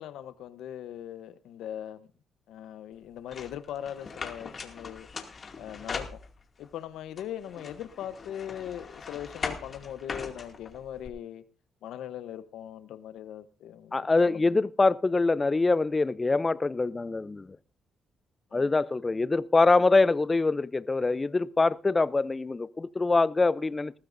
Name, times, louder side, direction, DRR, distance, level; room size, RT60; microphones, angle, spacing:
voice 1, 0.0-2.1 2.5-5.1 5.6-6.2 6.6-11.4 11.8-14.6 18.5-18.7, left 10 dB, 85° left, 0.9 m, -40 dB
sound 1, 3.3-6.7 7.2-11.1, left 4 dB, 45° left, 2.4 m, -40 dB
voice 2, 13.9-17.6 18.5-23.9, left 3 dB, 25° left, 0.5 m, -24 dB
19.5 x 14.5 x 2.6 m
cardioid pair, 70°, 0 cm